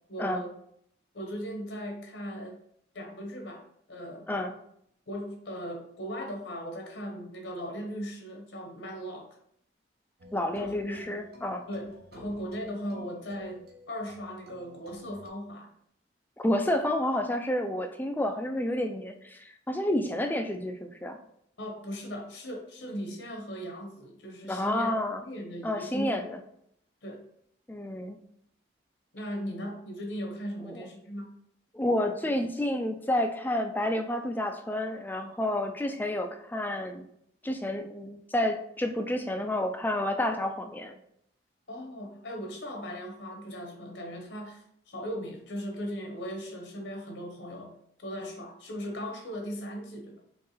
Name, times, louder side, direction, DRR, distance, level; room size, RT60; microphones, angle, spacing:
voice 1, 0.1-0.5 1.1-2.6 2.9-3.6 3.9-4.3 5.1-9.3 10.5-11.0 11.7-15.7 21.6-24.9 25.2-26.1 27.0-27.2 29.1-31.3 41.7-47.7 48.0-50.2, equal, 75° left, 2 dB, 1.0 m, -38 dB
sound 1, 10.2-15.3, left 1 dB, 55° right, 0.7 m, -52 dB
voice 2, 10.3-11.7 16.4-21.2 24.5-25.2 25.6-26.4 27.7-28.2 30.6-30.9 31.7-37.0 37.4-41.0, left 1 dB, 10° left, 6 dB, 0.3 m, -30 dB
4.5 x 3.1 x 3.1 m, 0.71 s
head